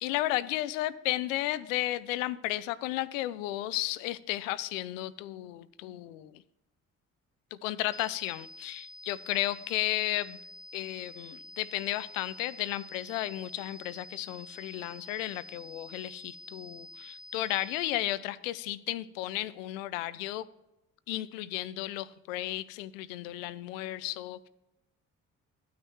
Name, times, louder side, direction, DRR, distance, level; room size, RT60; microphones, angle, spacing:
voice 1, 0.0-6.4 7.5-10.4 10.7-20.5 21.1-24.5, left 15 dB, 75° left, 0.5 m, -34 dB
sound 1, 7.9-17.9, left 1 dB, 40° left, 1.6 m, -48 dB
14.5 x 9.3 x 3.0 m
figure-of-eight pair, 45°, 39 cm